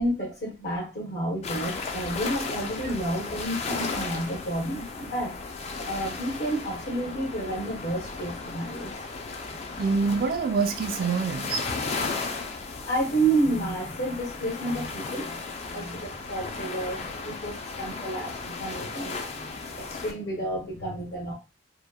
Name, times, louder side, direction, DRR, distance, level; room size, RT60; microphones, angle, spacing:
voice 1, 0.0-5.3 5.8-8.9 9.5-9.8 12.8-15.4 15.7-21.3, right 1 dB, 65° left, 0.8 m, -30 dB
sound 1, 1.4-20.1, left 4 dB, 35° left, 0.3 m, -35 dB
voice 2, 9.8-12.1, right 5 dB, 50° right, 0.4 m, -27 dB
2.8 x 2.1 x 2.2 m
head